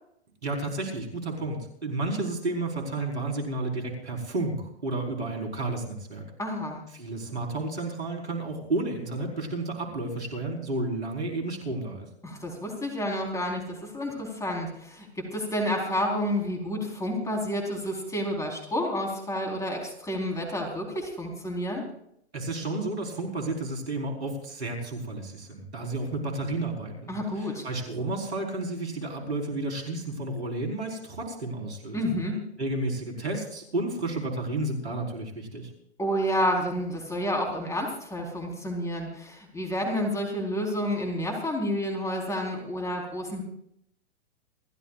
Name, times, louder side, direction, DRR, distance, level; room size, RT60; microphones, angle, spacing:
voice 1, 0.4-6.2 6.9-12.1 22.3-32.2 32.6-35.7, right 2 dB, 85° right, 1 dB, 4.7 m, -32 dB
voice 2, 6.4-6.8 12.2-21.8 27.1-27.7 31.9-32.5 36.0-43.4, equal, 10° left, 1 dB, 4.2 m, -30 dB
28.0 x 13.5 x 2.5 m, 0.72 s
hypercardioid pair, 115°, 32 cm